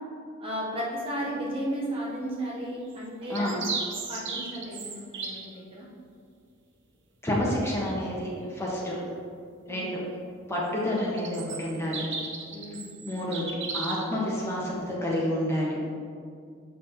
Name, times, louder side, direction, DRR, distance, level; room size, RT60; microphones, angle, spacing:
voice 1, 0.4-3.6 4.1-5.9 9.7-10.0 12.5-13.0, equal, 25° right, -5 dB, 1.0 m, -34 dB
sound 1, 2.9-5.5 11.0-14.1, right 4 dB, 60° right, 0.8 m, -35 dB
voice 2, 7.2-9.0 9.7-10.0 10.5-12.0 13.0-15.8, left 1 dB, 15° left, -5 dB, 1.3 m, -29 dB
7.2 x 6.1 x 2.9 m, 2.2 s
head